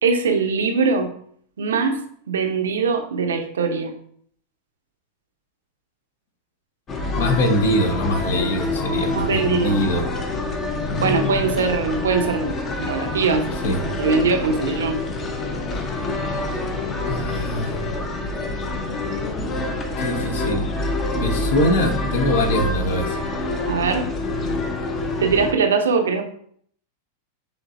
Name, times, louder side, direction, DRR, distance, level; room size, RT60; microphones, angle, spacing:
voice 1, 0.0-1.1 1.6-3.9 9.1-9.8 11.0-13.5 14.0-15.0 23.7-24.1 25.2-26.2, right 5 dB, 65° right, 5 dB, 0.6 m, -21 dB
sound 1, 6.9-25.5, left 2 dB, 25° left, 0.7 m, -26 dB
voice 2, 7.1-10.1 10.9-11.5 13.6-13.8 17.1-17.9 20.0-20.7 21.1-23.2, left 1 dB, 60° left, 5 dB, 0.8 m, -23 dB
5.2 x 3.2 x 2.4 m, 0.63 s
figure-of-eight pair, 90°, 0 cm